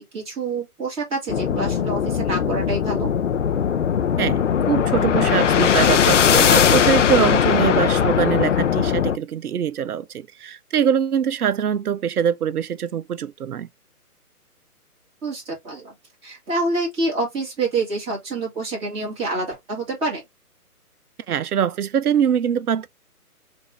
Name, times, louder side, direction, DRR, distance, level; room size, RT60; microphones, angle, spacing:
voice 1, 0.0-3.1 15.2-15.9 16.2-20.2, right 3 dB, 10° right, 1.6 m, -27 dB
sound 1, 1.3-9.2, left 8 dB, 55° left, 0.5 m, -19 dB
voice 2, 4.2-13.7 21.3-22.9, right 8 dB, 75° right, 0.6 m, -23 dB
5.2 x 2.6 x 3.3 m
figure-of-eight pair, 145°, 46 cm